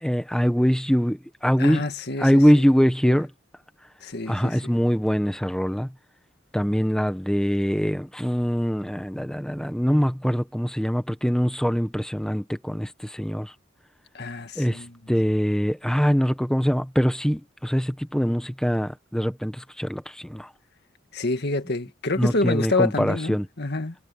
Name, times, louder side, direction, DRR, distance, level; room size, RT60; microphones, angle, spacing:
voice 1, 0.0-1.8 2.2-3.3 4.3-5.9 6.5-13.5 14.6-20.5 22.2-23.4, equal, 5° left, 1.3 m, -23 dB
voice 2, 1.6-2.6 3.0-3.1 4.0-4.6 14.1-14.9 21.1-23.9, left 2 dB, 60° left, 1.9 m, -27 dB
head